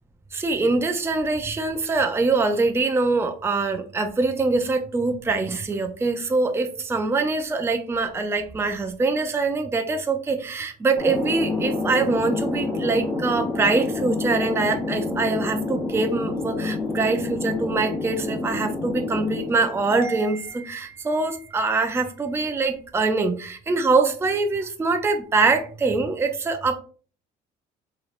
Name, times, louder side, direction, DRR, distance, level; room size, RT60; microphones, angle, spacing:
voice 1, 0.3-26.8, right 3 dB, 15° right, 0.5 m, -24 dB
Thunder, 11.0-20.3, left 3 dB, 10° left, 1.2 m, -28 dB
3.8 x 3.1 x 2.4 m
cardioid pair, 110°, 17 cm